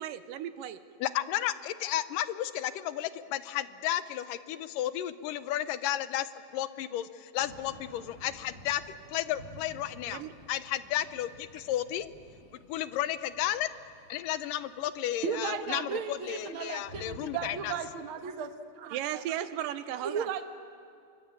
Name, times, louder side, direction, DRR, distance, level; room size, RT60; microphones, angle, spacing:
voice 1, 0.0-0.8 10.1-10.3 18.9-20.3, right 11 dB, 80° right, 12 dB, 2.5 m, -35 dB
voice 2, 1.0-6.3 6.5-7.1 7.3-8.8 9.1-10.2 10.5-12.1 12.7-13.7 14.1-17.7, left 12 dB, 80° left, 13 dB, 2.4 m, -33 dB
Thunder / Rain, 7.4-17.7, right 1 dB, 20° right, 5.9 m, -53 dB
voice 3, 15.2-18.5 18.7-19.0 20.0-20.4, right 7 dB, 55° right, 6 dB, 1.6 m, -35 dB
26.5 x 23.5 x 8.8 m, 2.3 s
omnidirectional pair, 3.9 m